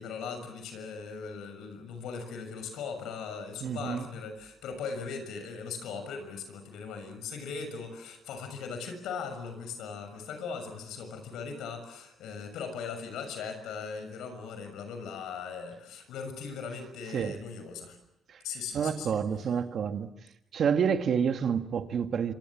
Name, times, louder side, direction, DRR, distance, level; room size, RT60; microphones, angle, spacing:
voice 1, 0.0-18.0 18.4-19.2, left 5 dB, 85° left, 6.5 m, -39 dB
voice 2, 3.6-4.1 17.1-17.4 18.3-18.4 18.7-20.1 20.5-22.3, right 7 dB, 60° right, 2.0 m, -28 dB
27.0 x 26.0 x 7.5 m
cardioid pair, 90°, 0 cm